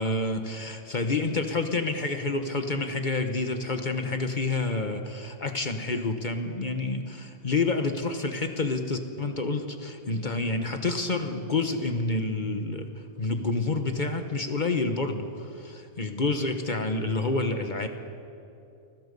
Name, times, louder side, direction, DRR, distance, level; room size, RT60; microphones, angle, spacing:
voice 1, 0.0-12.9 13.2-17.9, left 3 dB, 45° left, 6 dB, 1.4 m, -28 dB
29.5 x 20.5 x 5.4 m, 2.7 s
omnidirectional pair, 1.1 m